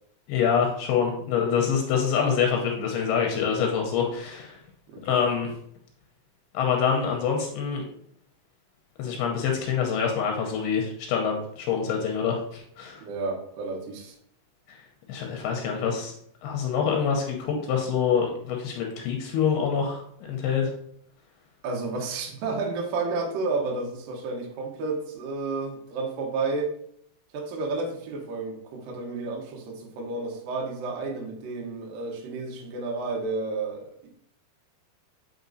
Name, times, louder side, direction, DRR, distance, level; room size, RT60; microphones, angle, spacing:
voice 1, 0.3-4.6 5.0-5.5 6.5-7.8 9.0-13.0 14.7-14.8 15.1-16.1 16.4-20.0 20.3-20.7, left 7 dB, 80° left, 1 dB, 2.6 m, -26 dB
voice 2, 4.9-5.2 13.0-14.2 21.6-26.7 27.3-34.1, right 3 dB, 70° right, 0 dB, 2.4 m, -31 dB
8.2 x 4.4 x 2.6 m, 0.69 s
omnidirectional pair, 4.8 m